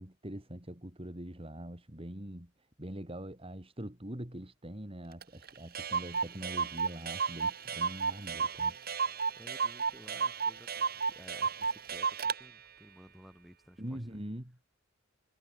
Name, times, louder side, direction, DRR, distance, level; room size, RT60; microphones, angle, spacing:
voice 1, 0.0-2.5 2.8-8.8 13.8-14.6, right 1 dB, 30° right, 2.6 m, -43 dB
Clock, 5.2-5.3 5.5-5.6 5.7-12.4, right 5 dB, 45° right, 2.2 m, -33 dB
voice 2, 9.4-14.2, equal, ahead, 7.9 m, -55 dB
head